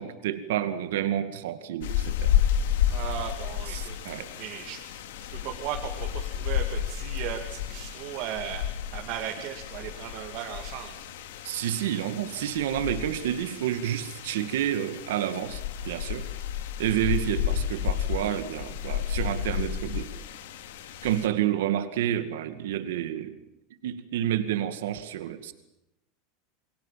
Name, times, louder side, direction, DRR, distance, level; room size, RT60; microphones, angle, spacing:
voice 1, 0.0-2.4 3.7-4.3 11.4-16.3 16.8-20.1 21.0-23.4 23.8-25.5, right 11 dB, 85° right, 10 dB, 2.2 m, -29 dB
sound 1, 1.8-21.3, left 10 dB, 80° left, 2.6 m, -31 dB
voice 2, 2.9-4.8 5.3-8.6 8.9-10.9, right 10 dB, 40° right, 1 dB, 2.6 m, -36 dB
29.0 x 23.0 x 7.6 m, 0.89 s
supercardioid pair, 175°, 0 cm